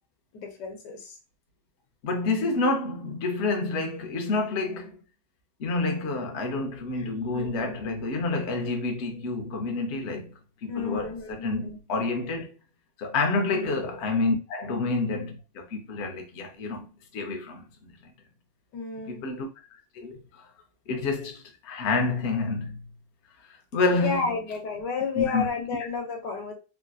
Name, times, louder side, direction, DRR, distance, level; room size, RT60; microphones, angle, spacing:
voice 1, 0.3-1.2 6.9-7.8 10.7-11.8 13.4-13.7 18.7-19.3 24.0-26.5, left 5 dB, 85° left, 1.4 m, -32 dB
voice 2, 2.0-5.0 5.6-10.3 10.6-12.5 13.0-17.9 19.1-19.5 19.9-20.5 20.9-22.8 23.7-24.3 25.2-25.4, left 3 dB, 60° left, 0.7 m, -28 dB
3.4 x 2.6 x 2.3 m
omnidirectional pair, 1.9 m